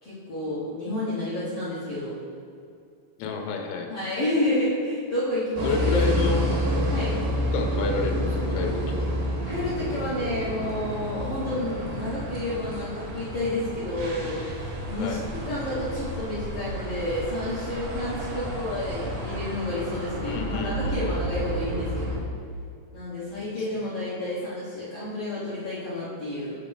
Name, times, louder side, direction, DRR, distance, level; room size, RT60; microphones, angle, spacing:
voice 1, 0.0-2.1 3.9-5.7 6.9-7.1 9.4-22.1 22.9-26.5, left 1 dB, 60° left, -12 dB, 1.4 m, -30 dB
voice 2, 3.2-3.9 5.6-6.5 7.5-9.1 15.0-15.2 20.2-21.2 23.4-23.7, left 4 dB, 85° left, 3 dB, 3.1 m, -30 dB
sound 1, 5.6-22.2, equal, 75° right, 3.6 m, -30 dB
8.0 x 6.8 x 3.5 m, 2.4 s
omnidirectional pair, 5.1 m